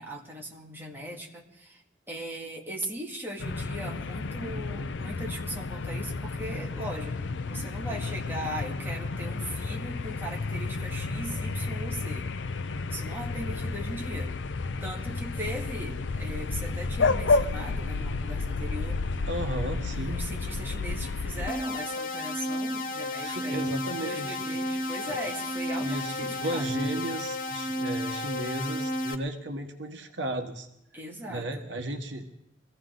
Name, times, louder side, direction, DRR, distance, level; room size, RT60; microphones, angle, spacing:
voice 1, 0.0-1.8 2.1-12.3 12.9-14.4 14.8-19.0 19.9-26.7 30.9-31.6, right 1 dB, 10° right, -2 dB, 2.2 m, -39 dB
sound 1, 3.4-21.5, left 3 dB, 70° left, 0.6 m, -31 dB
voice 2, 19.3-20.2 23.1-24.4 25.1-25.2 25.8-30.7 31.3-32.2, right 1 dB, 70° right, 5 dB, 1.3 m, -34 dB
sound 2, 21.5-29.2, left 1 dB, 50° left, 1.1 m, -32 dB
24.0 x 15.5 x 3.9 m, 0.78 s
head